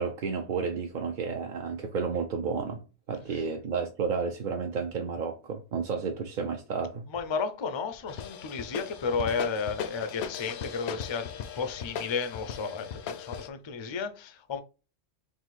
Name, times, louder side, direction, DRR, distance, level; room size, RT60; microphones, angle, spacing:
voice 1, 0.0-2.8 3.1-7.1, right 5 dB, 55° right, 0.6 m, -31 dB
voice 2, 7.1-14.6, left 5 dB, 45° left, 0.4 m, -33 dB
sound 1, 8.1-13.5, left 7 dB, 75° left, 0.8 m, -38 dB
4.0 x 2.5 x 4.1 m
omnidirectional pair, 1.1 m